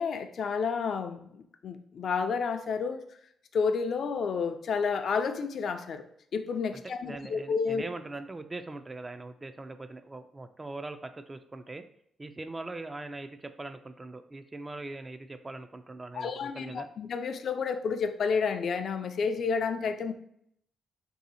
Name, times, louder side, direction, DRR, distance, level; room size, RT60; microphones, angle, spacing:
voice 1, 0.0-3.0 3.5-6.0 6.3-7.8 16.1-20.1, left 5 dB, 60° left, 7 dB, 0.3 m, -30 dB
voice 2, 7.0-11.8 12.2-16.9, right 2 dB, 25° right, 9 dB, 0.3 m, -41 dB
2.7 x 2.7 x 4.0 m, 0.70 s
cardioid pair, 80°, 0 cm